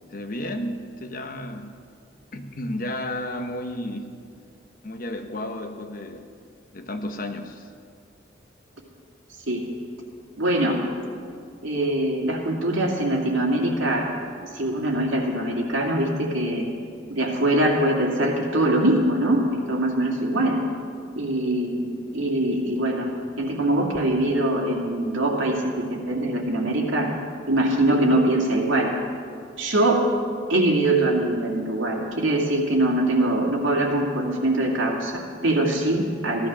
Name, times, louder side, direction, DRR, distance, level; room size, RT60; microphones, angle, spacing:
voice 1, 0.1-1.8 2.3-4.2 4.8-6.3 6.7-7.7, left 1 dB, 45° left, 6 dB, 1.0 m, -32 dB
voice 2, 10.4-10.8 11.6-14.1 14.5-16.7 17.1-20.6 21.2-23.1 23.4-27.1 27.5-28.9 29.6-30.1 30.5-36.5, right 1 dB, 90° right, 0 dB, 2.3 m, -23 dB
15.0 x 12.5 x 6.2 m, 2.3 s
head